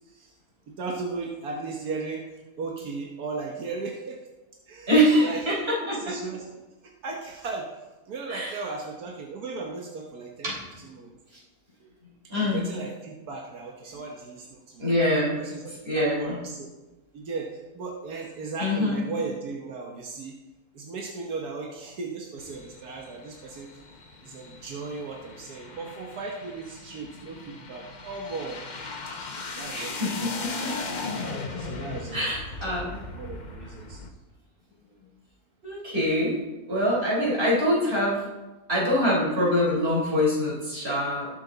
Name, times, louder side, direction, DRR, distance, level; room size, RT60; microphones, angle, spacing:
voice 1, 0.7-2.2 2.6-4.2 4.7-4.9 5.2-5.4 5.8-6.5 7.0-7.7 8.1-10.5 10.8-11.1 12.3-14.9 15.4-16.7 17.1-20.3 20.7-23.7 24.2-28.6 29.5-30.7 31.6-32.3 32.7-34.0, right 4 dB, 85° right, 1 dB, 1.6 m, -36 dB
voice 2, 4.9-6.2 8.3-8.5 10.4-10.6 12.3-12.7 13.9-14.0 14.8-15.4 15.6-16.4 18.6-19.1 29.7-30.7 32.1-33.0 35.6-36.3 36.7-38.2 38.7-41.3, equal, 40° right, -5 dB, 4.4 m, -24 dB
sound 1, 22.4-34.1, left 3 dB, 35° left, 0.9 m, -38 dB
19.0 x 7.0 x 3.9 m, 1.1 s
omnidirectional pair, 1.6 m